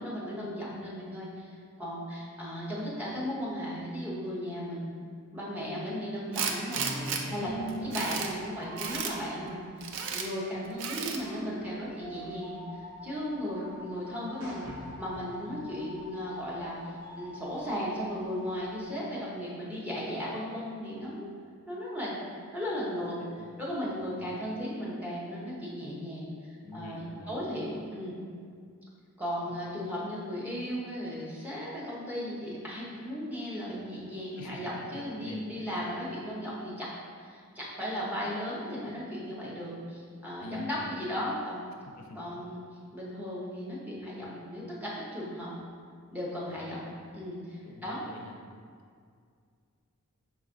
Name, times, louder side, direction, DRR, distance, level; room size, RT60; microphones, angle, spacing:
voice 1, 0.0-4.9 5.3-14.7 15.0-21.3 21.7-22.2 22.5-28.2 29.2-36.9 37.2-41.6 42.1-42.6 42.9-45.5 46.1-48.0, equal, 10° right, -7 dB, 0.7 m, -36 dB
Tools, 6.3-7.2 7.7-8.3 8.8-9.1 9.8-10.3 10.8-11.2, right 6 dB, 60° right, 0.4 m, -33 dB
sound 1, 6.7-18.8, right 1 dB, 80° right, 0.8 m, -44 dB
voice 2, 7.1-8.0 23.4-24.3 26.6-27.4 29.5-29.6 34.4-35.8 40.4-40.9 42.0-42.2 46.5-46.8 47.7-48.4, left 2 dB, 75° left, 3 dB, 0.4 m, -46 dB
5.0 x 3.1 x 2.5 m, 2.2 s
head